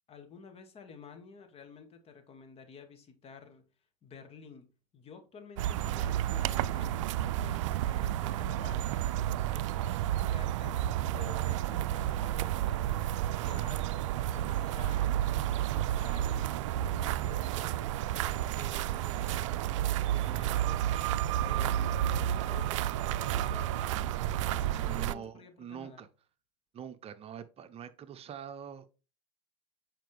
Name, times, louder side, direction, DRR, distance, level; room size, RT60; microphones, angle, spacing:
voice 1, 0.1-3.7 4.0-9.0 9.3-14.0 14.3-26.1, left 5 dB, 40° left, 2.2 m, -51 dB
sound 1, 5.6-25.1, right 12 dB, 75° right, 0.4 m, -31 dB
voice 2, 24.9-26.1 26.7-28.9, right 8 dB, 40° right, 0.8 m, -44 dB
9.0 x 5.0 x 3.4 m
hypercardioid pair, 85°, 16 cm